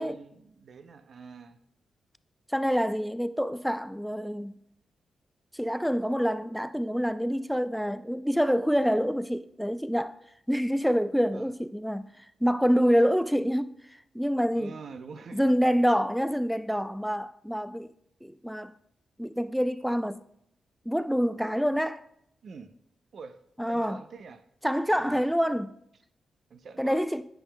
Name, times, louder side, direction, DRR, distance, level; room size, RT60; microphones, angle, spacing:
voice 1, 0.0-1.6 11.3-11.5 14.6-15.4 22.4-22.7 23.1-23.4 23.7-24.4 24.9-25.2 26.5-27.0, right 5 dB, 65° right, 0.6 m, -45 dB
voice 2, 2.5-4.6 5.5-10.2 10.5-14.8 15.3-17.9 18.2-18.7 19.2-20.2 20.9-22.0 23.6-24.0 24.6-25.7 26.8-27.2, equal, ahead, 0.4 m, -27 dB
9.8 x 9.1 x 2.2 m
hypercardioid pair, 40°, 0 cm